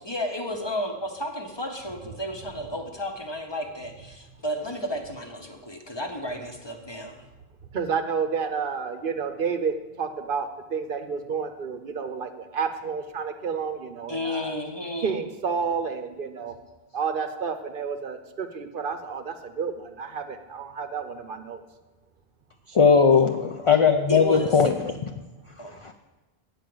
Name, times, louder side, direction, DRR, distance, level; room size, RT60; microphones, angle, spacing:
voice 1, 0.0-7.3 14.1-15.2 23.1-23.2 24.1-24.6 25.6-25.8, left 1 dB, 25° left, 3 dB, 0.8 m, -32 dB
voice 2, 7.7-14.5 15.0-16.5 16.9-21.6, right 6 dB, 60° right, 8 dB, 0.8 m, -30 dB
voice 3, 22.7-24.7 25.0-25.1 25.8-25.9, left 6 dB, 50° left, 6 dB, 0.3 m, -19 dB
9.0 x 4.9 x 7.7 m, 1.1 s
omnidirectional pair, 1.1 m